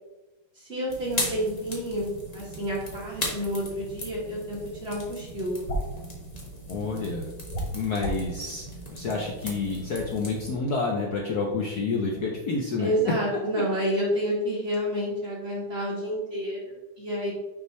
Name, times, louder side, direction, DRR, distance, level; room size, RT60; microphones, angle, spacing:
voice 1, 0.6-5.6 12.8-17.3, equal, 30° right, -5 dB, 1.8 m, -29 dB
sound 1, 0.9-10.6, left 1 dB, 25° left, 1.1 m, -38 dB
sound 2, 5.7-6.0 7.5-8.3, equal, 80° left, 2.2 m, -30 dB
voice 2, 6.7-7.3 7.7-8.6 8.9-12.9, left 3 dB, 60° left, -1 dB, 1.1 m, -29 dB
6.2 x 5.4 x 3.2 m, 1.1 s
omnidirectional pair, 2.3 m